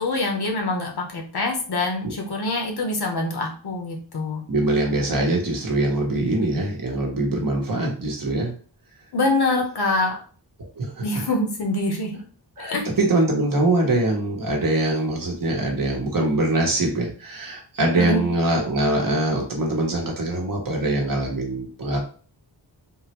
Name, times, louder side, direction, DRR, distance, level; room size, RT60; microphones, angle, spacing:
voice 1, 0.0-4.4 9.1-10.2 11.0-12.2 12.6-12.8 18.0-18.2, left 2 dB, 60° left, 2 dB, 0.8 m, -25 dB
voice 2, 4.5-8.5 10.8-11.2 12.6-22.0, right 2 dB, 50° right, 0 dB, 0.9 m, -23 dB
3.7 x 2.1 x 2.9 m, 0.40 s
wide cardioid pair, 160°, 43 cm